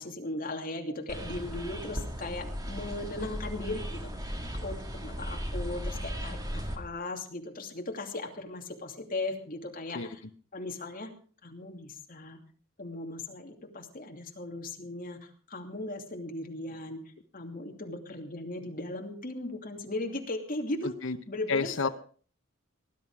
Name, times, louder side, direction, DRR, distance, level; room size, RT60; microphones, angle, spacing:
voice 1, 0.0-4.7 5.0-10.2 10.5-11.1 11.4-12.4 12.8-17.0 17.3-20.9 21.3-21.7, left 2 dB, 40° left, 2 dB, 2.8 m, -37 dB
sound 1, 1.1-6.8, equal, 20° right, 2.0 m, -36 dB
voice 2, 20.8-21.2 21.5-21.9, left 5 dB, 65° left, 8 dB, 0.9 m, -30 dB
19.5 x 11.5 x 4.9 m, 0.43 s
head